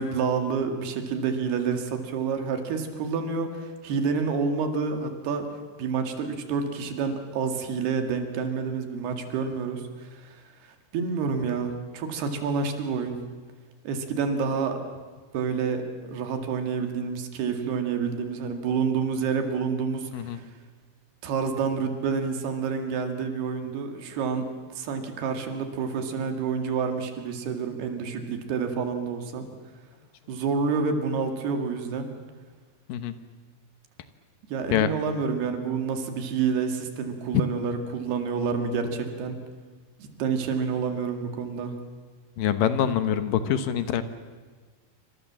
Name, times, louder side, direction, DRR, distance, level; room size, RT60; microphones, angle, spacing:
voice 1, 0.0-5.5 5.8-10.4 10.9-13.2 13.8-14.8 15.3-20.4 21.2-24.5 24.8-29.5 30.3-32.1 34.5-39.4 40.0-41.8, right 5 dB, 80° right, 6 dB, 4.2 m, -28 dB
voice 2, 42.4-44.0, left 9 dB, 70° left, 11 dB, 2.5 m, -24 dB
27.0 x 25.5 x 7.5 m, 1.4 s
omnidirectional pair, 4.5 m